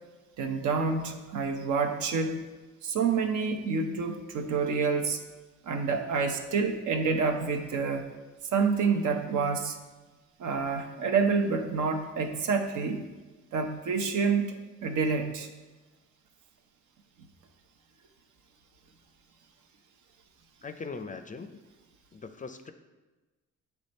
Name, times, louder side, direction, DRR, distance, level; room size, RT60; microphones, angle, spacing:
voice 1, 0.4-2.5 2.8-5.2 5.6-8.1 8.5-9.8 10.4-13.0 13.5-15.5, right 5 dB, 75° right, 5 dB, 0.8 m, -28 dB
voice 2, 20.6-21.6 22.1-22.7, left 4 dB, 25° left, 9 dB, 0.4 m, -40 dB
8.3 x 3.4 x 4.2 m, 1.2 s
cardioid pair, 90°, 30 cm